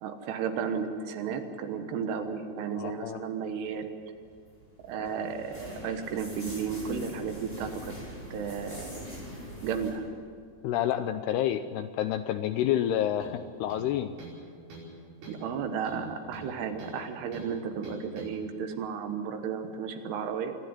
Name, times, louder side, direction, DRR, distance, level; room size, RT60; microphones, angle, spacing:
voice 1, 0.0-3.9 4.8-8.0 8.3-9.2 9.6-10.0 15.3-20.6, right 6 dB, 70° right, 6 dB, 3.1 m, -33 dB
voice 2, 2.7-3.2 10.6-14.2, left 11 dB, 80° left, 9 dB, 2.4 m, -29 dB
sound 1, 4.0-9.9, equal, 10° left, 6.1 m, -43 dB
sound 2, 13.2-13.4 13.7-14.4 14.7-14.9 15.2-15.5 15.8-17.0 17.3-17.5 17.8-18.3, right 1 dB, 55° right, 7.2 m, -45 dB
26.5 x 11.5 x 9.8 m, 2.2 s
omnidirectional pair, 5.3 m